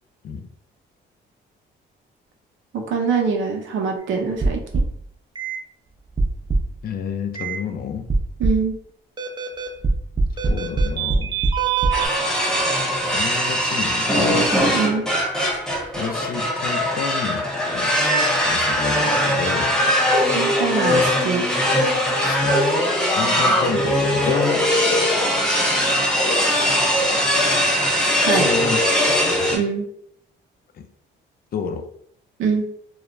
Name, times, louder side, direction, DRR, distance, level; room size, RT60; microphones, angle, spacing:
voice 1, 2.7-4.8 8.4-8.7 14.7-15.0 20.3-21.4 28.3-28.4 29.5-29.9 32.4-32.6, right 5 dB, 75° right, 2 dB, 0.6 m, -23 dB
sound 1, 4.4-5.0 5.4-5.6 6.2-6.8 7.3-7.6 8.1-8.7 9.2-12.1, right 3 dB, 20° right, 0.4 m, -22 dB
voice 2, 6.8-8.1 10.5-11.4 13.1-14.3 15.9-17.9 18.4-19.8 22.2-22.6 23.1-24.7 28.3-28.8 30.8-30.9 31.5-31.9, left 6 dB, 50° left, 7 dB, 0.4 m, -30 dB
sound 2, 11.9-29.6, equal, 5° left, 1.0 m, -20 dB
2.3 x 2.1 x 3.0 m, 0.65 s
cardioid pair, 90°, 20 cm